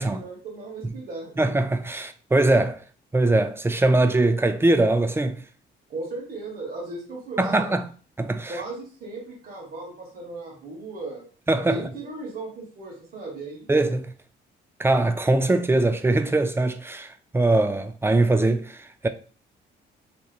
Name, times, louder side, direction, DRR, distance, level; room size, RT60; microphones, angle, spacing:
voice 1, 0.0-1.4 5.9-7.8 8.5-11.3 11.7-13.7, right 2 dB, 50° right, 1.2 m, -36 dB
voice 2, 1.4-2.8 3.1-5.4 7.4-7.9 8.2-8.6 11.5-11.8 13.7-14.1 14.8-19.1, right 2 dB, 10° right, 0.3 m, -22 dB
3.4 x 2.8 x 2.4 m
cardioid pair, 90°, 20 cm